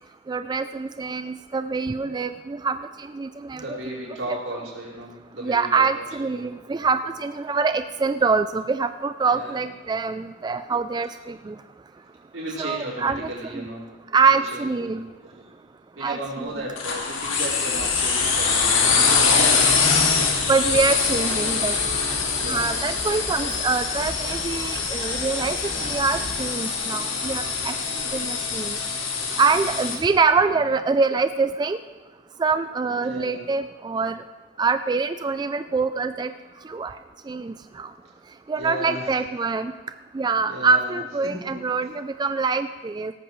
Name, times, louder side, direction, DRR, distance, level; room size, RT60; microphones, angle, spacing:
voice 1, 0.3-2.8 3.1-3.6 5.4-11.5 12.6-13.6 14.1-15.0 16.0-16.2 20.5-21.7 22.5-25.6 25.8-27.7 28.1-28.8 29.4-31.8 32.4-34.1 34.6-36.3 36.7-36.9 37.3-37.9 38.5-39.7 40.1-43.1, right 4 dB, 20° right, 10 dB, 0.3 m, -24 dB
voice 2, 1.7-2.3 3.5-7.0 9.2-9.6 11.3-11.5 12.3-13.8 14.2-15.5 15.9-19.2 20.8-21.8 22.4-23.5 29.1-29.4 30.6-30.7 33.0-33.4 38.6-39.2 40.5-41.3, right 1 dB, 80° right, -6 dB, 4.8 m, -36 dB
sound 1, 16.8-30.0, left 5 dB, 80° left, 2.3 m, -24 dB
sound 2, 17.7-26.3, right 1 dB, 55° right, 4.5 m, -37 dB
18.0 x 14.0 x 3.1 m, 1.2 s
head